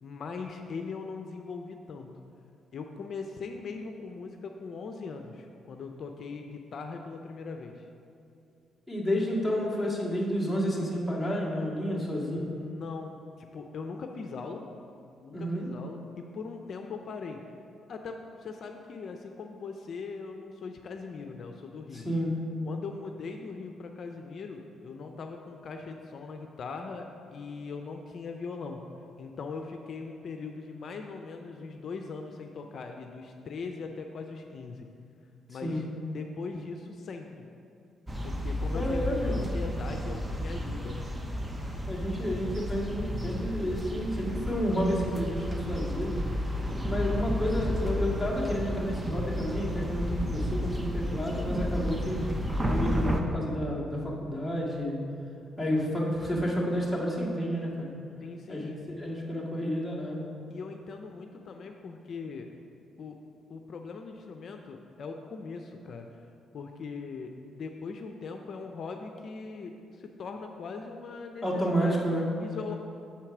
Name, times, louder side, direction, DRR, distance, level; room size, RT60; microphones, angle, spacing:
voice 1, 0.0-2.2 2.7-7.9 11.9-14.6 15.2-17.4 17.9-22.1 22.6-34.9 35.5-35.9 36.1-37.5 38.2-41.1 58.2-58.8 60.5-62.5 63.0-63.2 63.5-66.2 66.5-71.4 71.7-72.8, left 4 dB, 55° left, 4 dB, 0.5 m, -40 dB
voice 2, 8.9-12.4 15.3-15.7 21.9-22.3 35.6-35.8 38.7-39.5 41.9-46.2 46.9-52.3 52.6-55.0 55.6-57.9 58.5-58.7 59.0-60.3 71.4-72.3, equal, ahead, -5 dB, 1.9 m, -30 dB
sound 1, 38.1-53.2, equal, 20° right, 0.7 m, -32 dB
7.1 x 4.4 x 6.0 m, 2.5 s
cardioid pair, 90°, 0 cm